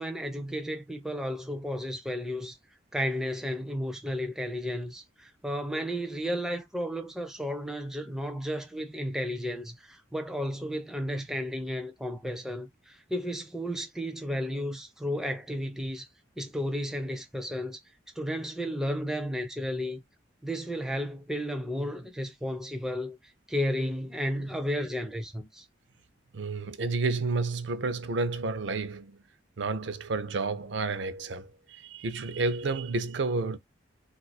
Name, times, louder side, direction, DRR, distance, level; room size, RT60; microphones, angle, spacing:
voice 1, 0.0-2.6 2.9-16.1 16.4-17.8 18.2-20.0 20.4-23.2 23.5-25.6, equal, 5° right, 0.4 m, -33 dB
voice 2, 26.3-29.2 29.6-33.6, right 3 dB, 70° right, 0.5 m, -30 dB
2.4 x 2.4 x 4.1 m
head